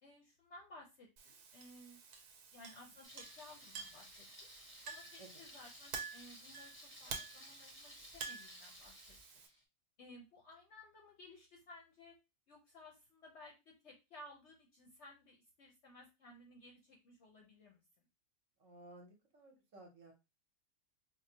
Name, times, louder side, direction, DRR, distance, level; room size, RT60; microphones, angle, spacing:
voice 1, 0.0-2.0 2.5-4.3 4.8-9.4 10.0-12.1 12.5-18.1, left 1 dB, 60° left, 0 dB, 0.8 m, -58 dB
Chink clink, 1.2-9.5, right 5 dB, 80° right, 1.2 m, -50 dB
Thunder, 3.0-9.6, left 1 dB, 15° left, 0.5 m, -57 dB
voice 2, 18.6-20.1, right 2 dB, 60° right, 2 dB, 1.1 m, -57 dB
4.6 x 2.0 x 2.7 m, 0.26 s
omnidirectional pair, 1.7 m